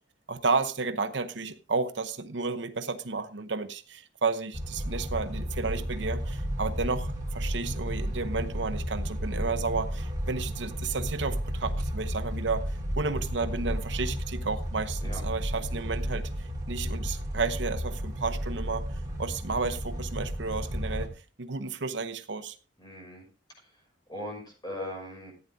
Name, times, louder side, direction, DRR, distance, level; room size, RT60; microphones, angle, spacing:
voice 1, 0.3-21.1 21.4-22.6, right 4 dB, 70° right, 0.9 m, -32 dB
sound 1, 4.5-21.1, equal, 20° right, 3.9 m, -33 dB
voice 2, 22.8-23.3 23.6-23.8 24.1-25.3, left 1 dB, 20° left, 5.9 m, -39 dB
14.5 x 9.3 x 3.6 m
head